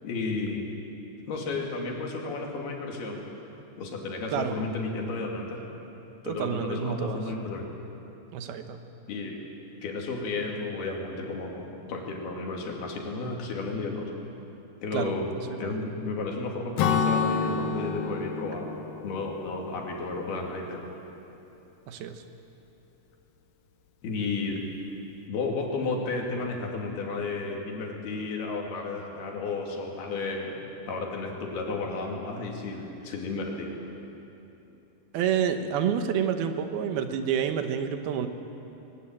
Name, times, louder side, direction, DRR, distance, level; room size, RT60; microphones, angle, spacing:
voice 1, 0.0-0.7 1.3-3.2 3.8-5.6 6.2-7.7 9.1-9.4 9.8-14.1 14.8-18.7 19.0-20.8 24.0-24.7 25.3-30.6 30.9-33.8, left 3 dB, 90° left, 0 dB, 4.6 m, -32 dB
voice 2, 6.2-7.2 8.3-8.8 14.9-15.2 15.5-15.9 21.9-22.2 35.1-38.3, right 8 dB, 80° right, 7 dB, 3.0 m, -29 dB
Acoustic guitar / Strum, 16.8-20.4, left 5 dB, 70° left, 2.7 m, -29 dB
21.0 x 20.5 x 8.9 m, 3.0 s
omnidirectional pair, 4.3 m